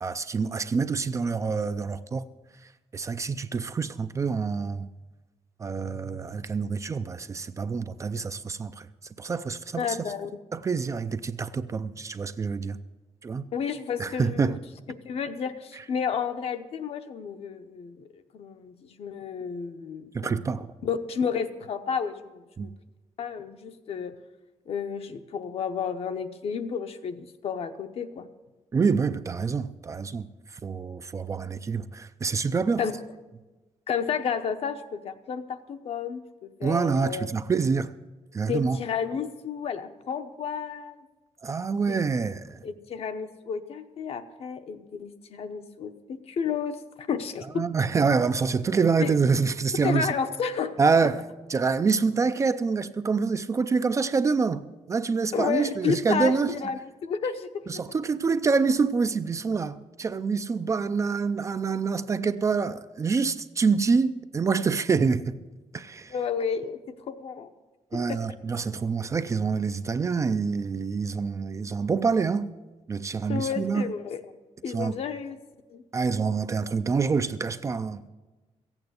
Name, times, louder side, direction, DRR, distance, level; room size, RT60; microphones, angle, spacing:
voice 1, 0.0-2.3 2.9-4.9 5.6-8.9 9.2-10.1 10.5-12.8 13.2-13.5 14.0-14.6 15.7-15.8 20.1-20.7 22.6-22.7 28.7-32.8 36.6-37.9 38.3-38.8 41.4-42.6 47.6-50.1 50.8-51.2 51.5-56.5 57.7-65.4 65.7-66.1 67.9-72.5 72.9-73.9 74.7-75.0 75.9-78.1, right 5 dB, 25° right, 0.4 m, -26 dB
voice 2, 9.8-10.4 13.5-14.6 15.0-20.5 20.8-22.7 23.2-24.1 24.7-28.3 32.8-33.0 33.9-37.3 38.5-41.0 41.9-42.0 42.6-47.6 49.0-49.1 49.8-50.8 55.3-57.5 66.1-66.8 67.1-67.5 67.9-68.2 73.3-74.2 74.6-75.4 75.7-75.8, left 6 dB, 55° left, 0.9 m, -31 dB
15.0 x 8.9 x 8.0 m
wide cardioid pair, 180°, 12 cm